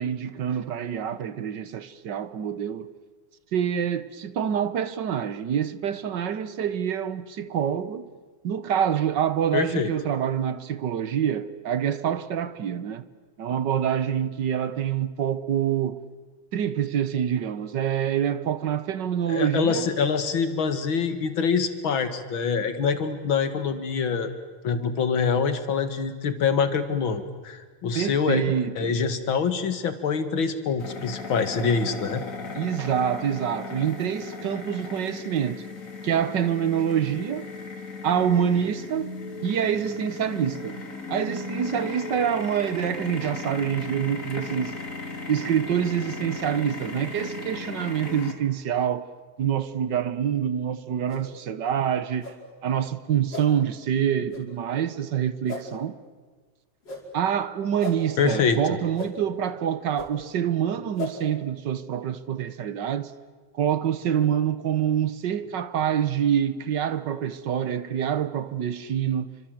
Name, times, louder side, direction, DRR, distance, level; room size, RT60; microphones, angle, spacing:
voice 1, 0.0-2.9 3.5-8.1 8.4-13.0 13.4-16.0 16.5-19.9 27.9-28.9 32.5-35.6 36.0-37.5 38.0-39.1 39.4-40.8 41.1-44.8 45.3-49.1 49.4-52.3 52.6-55.9 57.1-63.1 63.5-69.3, right 9 dB, 65° right, 1.7 m, -26 dB
voice 2, 9.5-9.9 19.3-24.3 24.6-32.2 58.2-58.8, left 6 dB, 75° left, 2.6 m, -25 dB
sound 1, 30.8-48.3, left 3 dB, 40° left, 3.3 m, -36 dB
sound 2, 51.1-51.2 52.2-52.3 53.3-53.4 54.3-54.4 55.5-55.6 56.8-57.0 57.8-58.0 58.9-59.1 59.9-60.1 61.0-61.1, left 3 dB, 60° left, 5.6 m, -34 dB
28.5 x 25.5 x 7.9 m
omnidirectional pair, 2.2 m